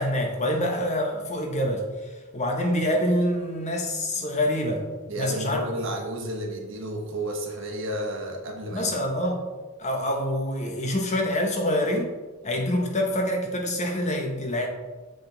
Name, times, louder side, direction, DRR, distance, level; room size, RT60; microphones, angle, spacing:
voice 1, 0.0-1.9 2.3-4.8 5.2-5.6 8.7-9.5 9.8-12.1 12.4-14.7, left 1 dB, 35° left, 2 dB, 1.1 m, -26 dB
voice 2, 5.1-9.1, right 1 dB, 60° right, 1 dB, 1.4 m, -32 dB
7.8 x 5.2 x 3.9 m, 1.2 s
head